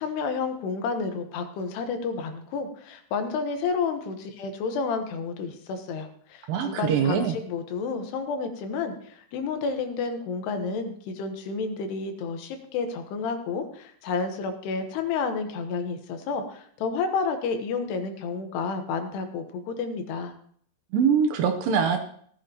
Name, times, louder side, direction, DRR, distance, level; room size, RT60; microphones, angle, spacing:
voice 1, 0.0-20.3, left 4 dB, 85° left, 6 dB, 3.2 m, -30 dB
voice 2, 6.5-7.4 20.9-22.0, right 7 dB, 75° right, 5 dB, 2.2 m, -23 dB
17.0 x 10.5 x 2.9 m, 0.62 s
omnidirectional pair, 4.6 m